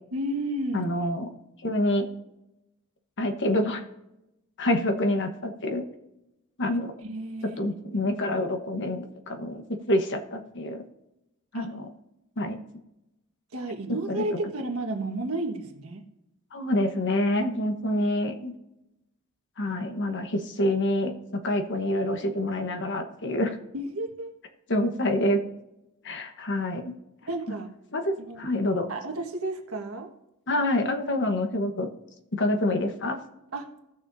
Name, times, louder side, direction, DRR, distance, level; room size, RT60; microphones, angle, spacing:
voice 1, 0.1-0.9 7.0-7.6 11.5-11.7 13.5-16.0 23.7-24.3 27.2-27.7 28.2-28.5 28.9-30.1 33.5-33.7, right 1 dB, 70° right, 3 dB, 1.5 m, -32 dB
voice 2, 0.7-1.3 1.6-2.1 3.2-3.8 4.6-5.9 6.6-6.9 7.4-10.8 11.5-11.9 12.4-12.6 13.9-14.4 16.5-18.5 19.6-23.6 24.7-25.4 26.0-26.9 27.9-28.9 30.5-31.9 32.3-33.2, left 1 dB, 55° left, 6 dB, 1.1 m, -27 dB
17.0 x 6.4 x 2.7 m, 0.91 s
head